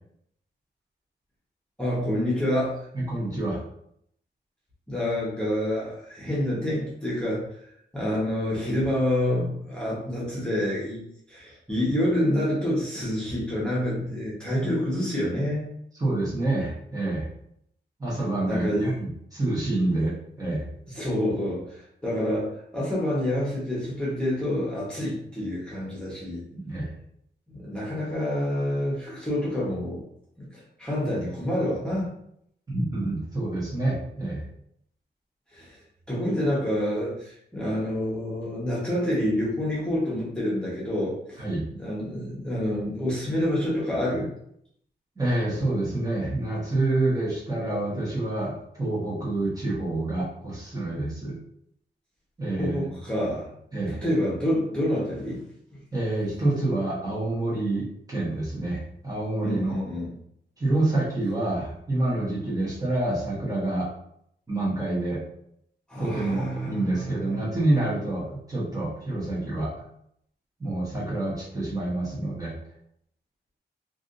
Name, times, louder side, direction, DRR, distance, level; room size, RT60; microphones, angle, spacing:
voice 1, 1.8-2.8 4.9-7.5 7.9-11.0 11.3-15.6 18.4-18.9 20.9-26.4 27.5-30.0 30.4-32.1 35.5-35.8 36.1-41.4 41.7-44.3 52.6-53.5 54.0-55.4 55.7-55.8 59.4-60.1 65.9-67.4, left 1 dB, 5° left, -7 dB, 1.1 m, -27 dB
voice 2, 2.9-3.6 16.0-17.3 18.0-20.7 26.5-26.9 32.7-34.4 41.4-41.7 45.2-51.4 52.4-52.9 53.7-54.0 55.9-59.8 60.6-63.9 64.5-65.2 66.0-69.7 70.6-72.6, right 2 dB, 20° right, -7 dB, 1.1 m, -27 dB
3.4 x 2.5 x 2.6 m, 0.72 s
wide cardioid pair, 145°, 18 cm